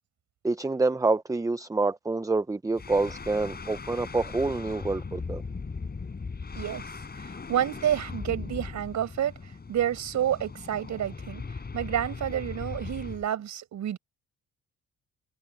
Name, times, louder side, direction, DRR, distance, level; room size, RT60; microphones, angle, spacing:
voice 1, 0.4-5.4, right 3 dB, 10° right, 0.6 m, -27 dB
sound 1, 2.7-13.3, left 4 dB, 30° left, 7.8 m, -39 dB
voice 2, 7.2-11.4 11.7-14.0, right 10 dB, 70° right, 6.3 m, -29 dB
cardioid pair, 90°, 30 cm